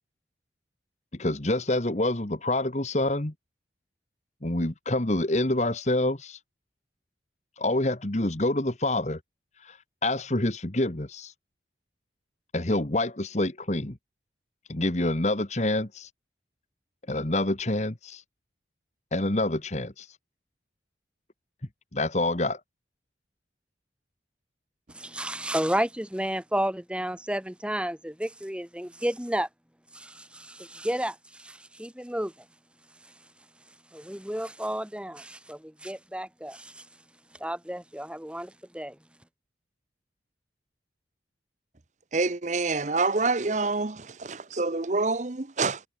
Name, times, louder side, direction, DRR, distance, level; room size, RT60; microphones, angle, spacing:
voice 1, 1.2-3.3 4.4-6.4 7.6-9.2 9.6-11.3 12.5-14.0 14.7-16.1 17.1-18.2 19.1-20.1 21.9-22.6, left 1 dB, 40° left, 1.5 m, -27 dB
voice 2, 24.9-29.5 29.9-32.5 33.9-36.9 37.4-39.0, right 1 dB, 5° right, 1.7 m, -32 dB
voice 3, 42.1-45.8, right 3 dB, 40° right, 0.8 m, -27 dB
head